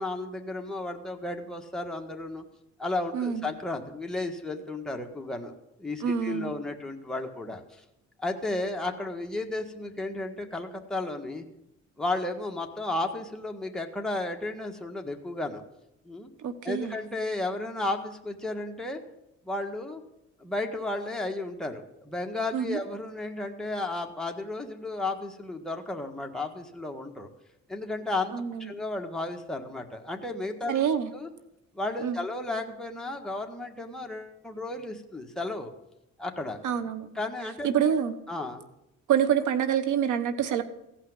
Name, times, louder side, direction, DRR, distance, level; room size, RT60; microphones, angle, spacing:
voice 1, 0.0-2.4 2.8-5.5 5.8-7.8 8.2-11.4 12.0-15.6 16.0-16.3 16.6-19.0 19.4-20.0 20.4-27.3 27.7-30.9 31.1-31.3 31.7-35.7 36.2-36.6 37.1-37.7 38.3-38.6, left 2 dB, ahead, 1 dB, 1.7 m, -33 dB
voice 2, 3.1-3.5 6.0-6.5 16.4-17.0 22.5-22.8 28.3-28.7 30.7-31.1 32.0-32.2 36.6-37.1 37.6-38.1 39.1-40.6, right 8 dB, 80° right, 12 dB, 1.2 m, -26 dB
15.5 x 5.7 x 9.6 m, 0.86 s
cardioid pair, 90°, 30 cm